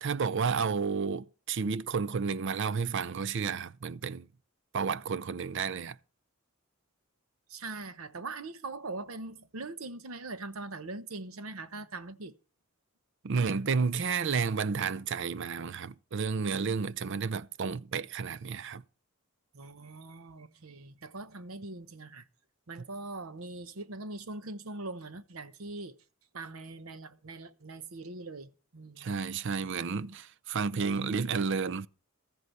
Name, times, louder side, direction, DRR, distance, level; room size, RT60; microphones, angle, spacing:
voice 1, 0.0-4.3 4.7-6.0 13.2-18.8 29.0-31.9, right 5 dB, 60° right, 0.5 m, -31 dB
voice 2, 7.5-12.4 19.5-22.3 22.7-26.0 26.3-29.1, right 3 dB, 90° right, 1.0 m, -42 dB
14.0 x 8.0 x 5.8 m
head